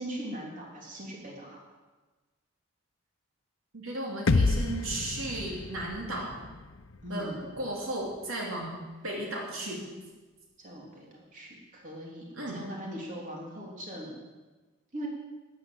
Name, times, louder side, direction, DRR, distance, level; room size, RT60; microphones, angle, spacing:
voice 1, 0.0-1.6 7.0-7.5 10.6-14.2 14.9-15.1, right 1 dB, 40° right, -2 dB, 3.5 m, -40 dB
voice 2, 3.7-6.4 7.1-8.8 9.0-9.8 12.4-12.6, right 1 dB, 85° right, -2 dB, 3.4 m, -35 dB
sound 1, 4.3-8.2, left 3 dB, 70° left, 0.7 m, -30 dB
12.5 x 10.5 x 7.9 m, 1.3 s
head